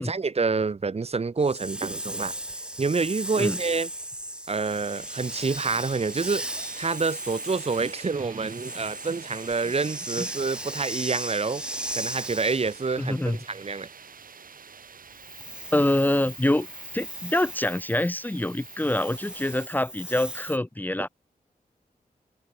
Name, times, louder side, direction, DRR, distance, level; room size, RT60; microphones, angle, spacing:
voice 1, 0.0-2.3 2.8-3.9 4.5-6.5 6.8-11.6 11.9-13.9, right 4 dB, 40° right, 4.1 m, -27 dB
Hiss, 1.4-12.9 15.2-20.6, right 1 dB, 5° right, 2.2 m, -37 dB
sound 1, 4.6-19.7, right 6 dB, 65° right, 5.7 m, -47 dB
voice 2, 13.0-13.4 15.7-16.7 16.9-21.1, left 1 dB, 10° left, 2.0 m, -25 dB
wide cardioid pair, 175°, 16 cm